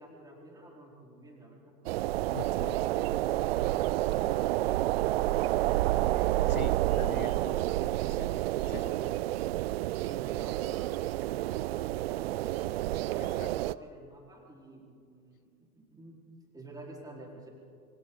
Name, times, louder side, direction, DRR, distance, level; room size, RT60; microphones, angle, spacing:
voice 1, 0.0-1.8 8.5-9.2 9.9-12.7 13.0-16.2 16.5-17.5, right 1 dB, 10° right, -2 dB, 4.5 m, -50 dB
sound 1, 1.9-13.8, right 16 dB, 45° right, 0.5 m, -29 dB
voice 2, 2.3-2.8 6.4-7.8 8.1-8.4 8.7-8.9 9.6-9.7 13.2-13.5, left 9 dB, 75° left, 17 dB, 0.7 m, -43 dB
26.5 x 24.5 x 4.0 m, 2.4 s
figure-of-eight pair, 90°, 42 cm